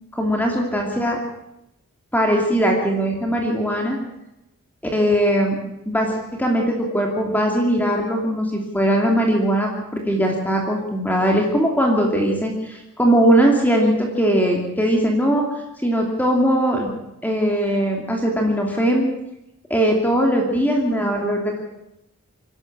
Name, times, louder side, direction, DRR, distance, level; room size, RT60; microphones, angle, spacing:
voice 1, 0.2-1.2 2.1-4.0 4.9-5.6 5.9-15.4 15.8-16.9 17.2-19.1 19.7-21.6, equal, 10° left, 0 dB, 2.7 m, -20 dB
27.0 x 12.0 x 8.7 m, 0.89 s
head